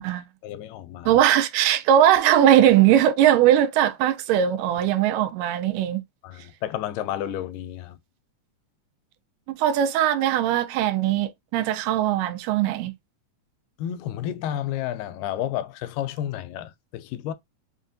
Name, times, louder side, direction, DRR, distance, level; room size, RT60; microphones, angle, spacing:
voice 1, 0.4-1.2 6.2-8.0 13.8-17.3, left 11 dB, 90° left, 2.2 m, -31 dB
voice 2, 1.1-6.0 9.5-12.9, right 11 dB, 85° right, 2.2 m, -20 dB
5.3 x 2.4 x 2.5 m
omnidirectional pair, 3.7 m